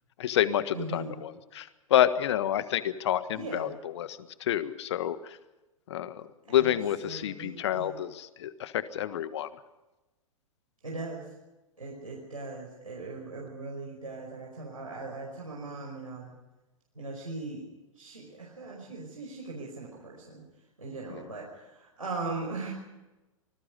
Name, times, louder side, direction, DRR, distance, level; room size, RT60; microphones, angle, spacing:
voice 1, 0.2-5.4 5.9-9.5 21.1-21.3, left 11 dB, 55° left, 14 dB, 1.5 m, -29 dB
voice 2, 0.7-1.2 3.3-3.7 6.5-6.7 7.0-8.0 10.8-11.3 11.8-16.3 17.0-17.6 18.0-20.4 20.8-22.7, right 3 dB, 80° right, -2 dB, 5.2 m, -39 dB
25.5 x 20.5 x 5.3 m, 1.1 s
figure-of-eight pair, 100°, 17 cm